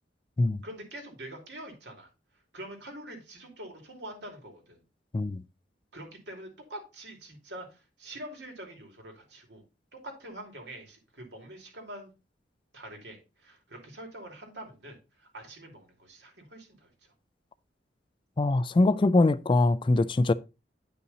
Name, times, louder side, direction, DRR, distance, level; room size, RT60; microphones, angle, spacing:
voice 1, 0.6-2.1 2.5-4.8 5.9-9.6 9.9-12.1 12.7-16.9, right 1 dB, 70° right, 2.8 m, -45 dB
voice 2, 18.4-20.3, left 2 dB, 30° left, 0.3 m, -23 dB
10.0 x 5.6 x 4.1 m
head